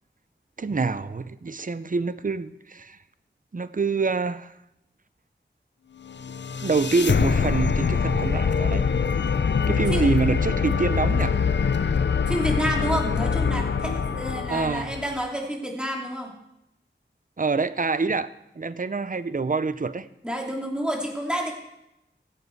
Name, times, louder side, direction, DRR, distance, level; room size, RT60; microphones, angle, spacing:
voice 1, 0.6-3.0 3.5-4.6 6.6-8.8 9.7-11.4 14.5-14.9 17.4-18.3 18.6-20.1, right 4 dB, 45° right, 14 dB, 0.6 m, -26 dB
sound 1, 6.1-15.2, left 6 dB, 65° left, 0.5 m, -24 dB
voice 2, 12.3-16.3 20.2-21.5, equal, 5° right, 0 dB, 2.9 m, -29 dB
16.5 x 7.9 x 4.7 m, 0.86 s
wide cardioid pair, 40°, 20 cm